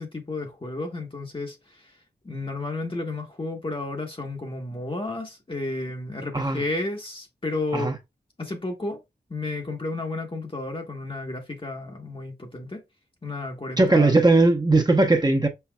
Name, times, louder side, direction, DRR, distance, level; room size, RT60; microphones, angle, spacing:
voice 1, 0.0-2.0 2.2-7.9 8.4-9.0 9.3-12.8 13.2-14.1, left 2 dB, 30° left, 1.1 m, -32 dB
voice 2, 13.8-15.5, right 2 dB, 25° right, 0.9 m, -19 dB
5.7 x 3.9 x 2.3 m
wide cardioid pair, 70°, 17 cm